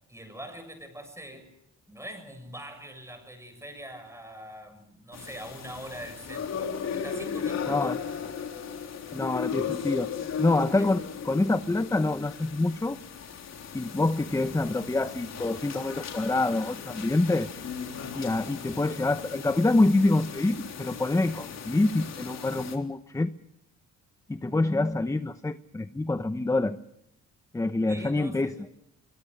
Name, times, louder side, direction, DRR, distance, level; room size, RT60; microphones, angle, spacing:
voice 1, 0.1-1.5 1.9-7.9 9.2-9.3 10.6-10.9 27.9-28.7, right 1 dB, 10° right, 8 dB, 7.4 m, -43 dB
sound 1, 5.1-22.8, left 7 dB, 60° left, 3.8 m, -37 dB
voice 2, 9.1-10.1 10.4-13.0 13.7-17.5 18.1-23.3 24.3-26.8 27.5-28.5, left 2 dB, 10° left, 11 dB, 0.9 m, -26 dB
25.0 x 23.0 x 6.5 m, 0.83 s
cardioid pair, 90°, 30 cm